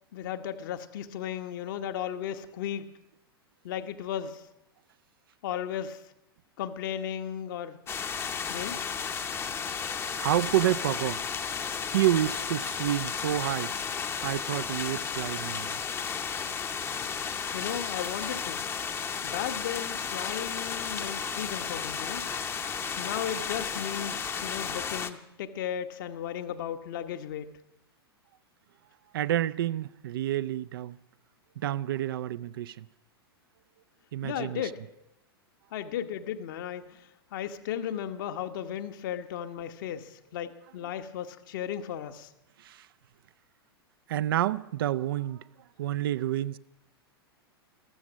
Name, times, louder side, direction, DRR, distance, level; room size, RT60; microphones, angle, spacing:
voice 1, 0.1-2.9 3.6-4.5 5.4-6.1 6.6-7.8 8.5-8.8 17.5-18.6 19.2-22.2 23.0-27.5 34.2-34.8 35.7-42.3, left 9 dB, 55° left, 1.1 m, -35 dB
sound 1, 7.9-25.1, left 6 dB, 20° left, 0.8 m, -33 dB
voice 2, 10.1-11.2 11.9-13.7 14.2-15.8 29.1-31.0 31.6-32.9 34.1-34.6 42.6-42.9 44.1-45.4 45.8-46.6, right 13 dB, 60° right, 0.5 m, -29 dB
15.0 x 13.0 x 6.1 m
figure-of-eight pair, 100°, 13 cm